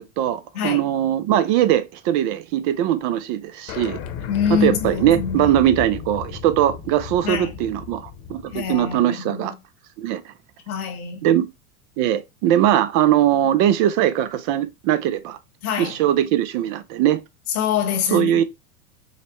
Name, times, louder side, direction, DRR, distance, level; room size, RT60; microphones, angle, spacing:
voice 1, 0.0-4.0 4.5-9.5 10.0-10.3 11.2-11.5 12.0-15.4 15.8-17.2 18.1-18.4, right 11 dB, 45° right, 0.5 m, -20 dB
voice 2, 0.5-0.9 4.3-5.6 7.2-7.6 8.5-9.5 10.7-11.3 15.6-16.0 17.5-18.4, left 8 dB, 80° left, 1.3 m, -25 dB
sound 1, 3.7-9.0, left 7 dB, 55° left, 0.9 m, -34 dB
4.9 x 2.1 x 3.0 m
hypercardioid pair, 95°, 43 cm